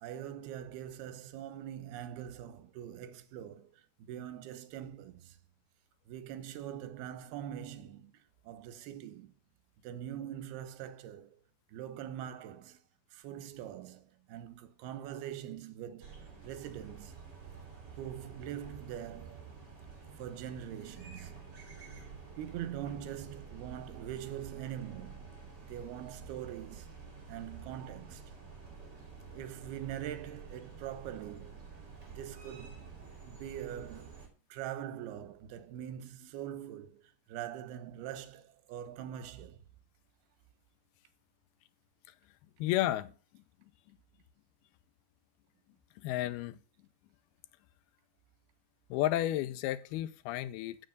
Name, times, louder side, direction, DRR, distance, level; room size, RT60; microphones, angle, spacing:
voice 1, 0.0-3.7 4.0-5.4 6.1-8.1 8.4-9.3 9.8-11.4 11.7-12.8 13.1-17.1 18.0-19.5 20.2-21.6 22.4-25.3 25.6-26.9 27.3-28.3 29.3-31.7 32.1-32.8 33.2-37.0 37.3-39.6, right 10 dB, 85° right, 2.9 m, -43 dB
sound 1, 16.0-34.3, right 5 dB, 30° right, 3.0 m, -50 dB
voice 2, 42.6-43.4 46.0-46.6 48.9-50.8, left 14 dB, 90° left, 2.6 m, -32 dB
7.8 x 6.4 x 6.5 m
omnidirectional pair, 4.3 m